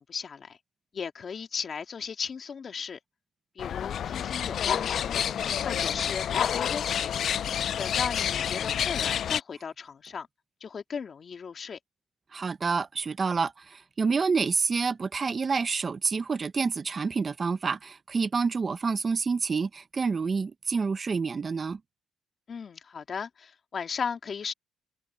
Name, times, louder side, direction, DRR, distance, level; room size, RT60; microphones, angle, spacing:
voice 1, 0.1-0.6 0.9-3.0 3.6-5.3 5.6-7.1 7.8-10.3 10.6-11.8 22.5-24.5, left 6 dB, 45° left, 2.6 m, -36 dB
sound 1, 3.6-9.4, left 9 dB, 65° left, 0.5 m, -29 dB
voice 2, 12.3-21.8, right 5 dB, 35° right, 0.8 m, -28 dB
cardioid pair, 90°, 0 cm